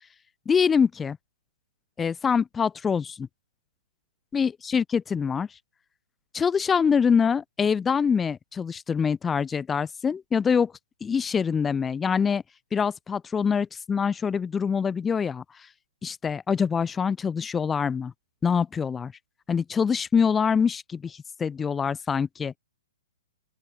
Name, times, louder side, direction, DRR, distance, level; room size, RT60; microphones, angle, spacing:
voice 1, 0.5-1.2 2.0-3.3 4.3-5.5 6.3-10.7 11.0-12.4 12.7-15.4 16.0-18.1 18.4-19.1 19.5-22.5, left 6 dB, 10° left, 0.8 m, -24 dB
open air
figure-of-eight pair, 115°, 0 cm